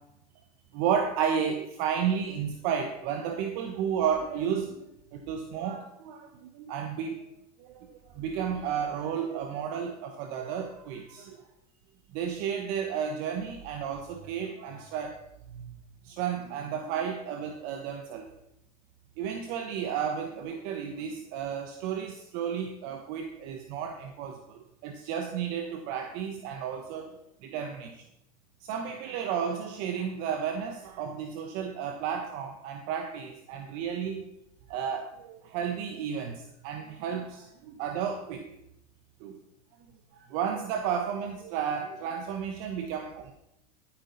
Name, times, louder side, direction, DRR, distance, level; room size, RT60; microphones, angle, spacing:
voice 1, 0.7-7.2 7.6-11.4 12.1-15.2 15.5-15.8 16.0-18.3 19.2-28.0 28.6-34.2 34.7-38.6 39.2-39.4 40.1-43.3, right 7 dB, 60° right, 5 dB, 1.3 m, -33 dB
13.5 x 9.0 x 4.1 m, 0.82 s
hypercardioid pair, 100°, 19 cm